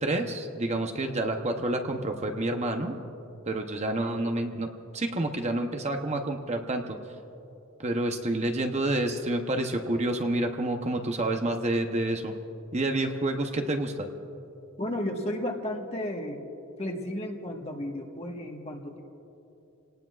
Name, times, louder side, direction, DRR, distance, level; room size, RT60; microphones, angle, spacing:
voice 1, 0.0-3.0 3.4-4.7 4.9-7.0 7.8-12.3 12.7-14.1, right 1 dB, 30° right, 4 dB, 0.8 m, -28 dB
voice 2, 14.8-16.4 16.8-19.0, left 1 dB, 30° left, 1 dB, 1.4 m, -33 dB
28.5 x 18.5 x 2.4 m, 2.9 s
head